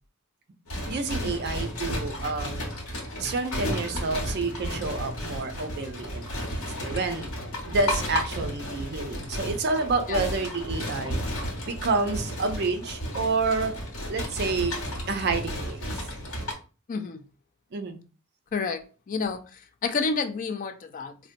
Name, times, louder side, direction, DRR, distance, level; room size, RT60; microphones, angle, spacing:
sound 1, 0.7-16.5, equal, 90° left, 1.0 m, -33 dB
voice 1, 0.9-2.6 3.2-6.5 6.8-7.3 7.7-11.2 11.6-13.8 14.1-14.8 15.1-15.9 17.7-18.0, right 3 dB, 50° right, 0.5 m, -29 dB
voice 2, 16.9-17.2 18.5-21.2, left 4 dB, 40° left, 0.3 m, -30 dB
3.9 x 2.2 x 2.5 m
head